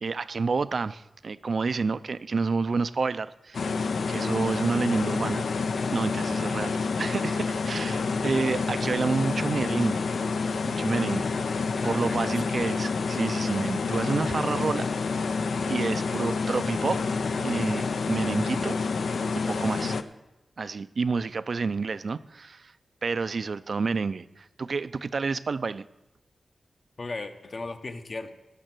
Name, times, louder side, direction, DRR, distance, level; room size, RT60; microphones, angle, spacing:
voice 1, 0.0-3.8 4.1-5.4 5.9-10.0 10.6-11.3 11.8-15.3 15.7-17.0 17.4-18.8 19.5-20.0 20.6-22.7 23.0-25.8, right 4 dB, 60° right, 15 dB, 0.4 m, -29 dB
sound 1, 3.5-20.0, left 4 dB, 80° left, 0.6 m, -28 dB
voice 2, 11.7-12.5 27.0-28.3, left 3 dB, 50° left, 7 dB, 1.0 m, -37 dB
17.0 x 6.5 x 6.1 m, 0.96 s
wide cardioid pair, 95°, 0 cm